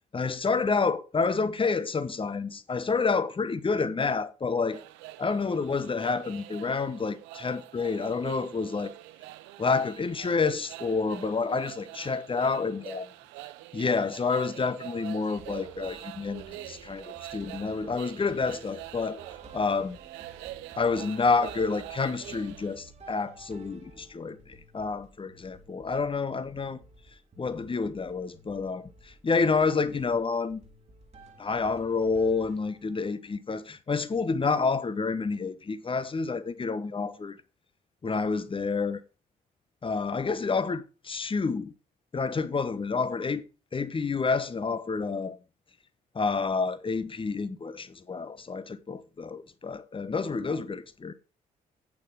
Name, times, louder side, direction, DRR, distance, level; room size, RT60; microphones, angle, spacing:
voice 1, 0.1-4.8 5.2-8.9 9.6-13.1 13.7-19.2 19.5-20.0 20.8-26.8 27.4-30.6 31.4-37.4 38.0-39.0 39.8-41.7 42.1-43.4 43.7-45.4 46.1-51.1, left 4 dB, 25° left, 1.0 m, -29 dB
sound 1, 4.7-22.8, right 16 dB, 65° right, 0.6 m, -45 dB
sound 2, 15.4-33.2, right 3 dB, 35° right, 2.0 m, -52 dB
8.6 x 7.0 x 4.7 m
figure-of-eight pair, 40°, 20 cm